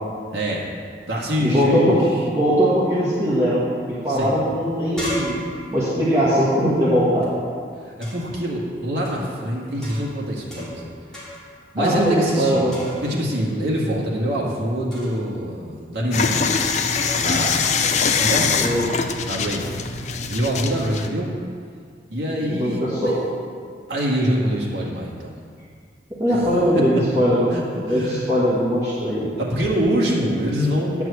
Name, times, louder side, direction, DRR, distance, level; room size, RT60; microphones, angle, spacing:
voice 1, 0.3-0.7 1.1-2.0 4.1-4.4 7.8-10.9 11.2-11.3 11.7-12.7 13.0-16.4 17.2-17.8 18.2-18.5 19.2-19.7 20.3-21.3 22.1-23.2 23.9-25.4 26.3-26.4 27.1-27.2 27.5-28.3 29.4-31.0, equal, 75° right, -4 dB, 1.9 m, -25 dB
voice 2, 1.4-5.4 5.7-7.3 11.8-13.0 18.6-18.9 22.3-23.2 26.2-29.3, equal, 15° right, -10 dB, 1.5 m, -20 dB
sound 1, 4.6-7.3 8.0-8.4 9.1-9.3 9.8-10.9 11.1-11.5 11.8-12.4 12.7-13.3 14.9-15.3 16.1-16.6 16.9-17.4 18.1-18.4, left 1 dB, 5° left, 2.4 m, -36 dB
sound 2, 16.1-21.1, left 5 dB, 40° left, 0.5 m, -23 dB
9.9 x 4.7 x 7.9 m, 2.1 s
head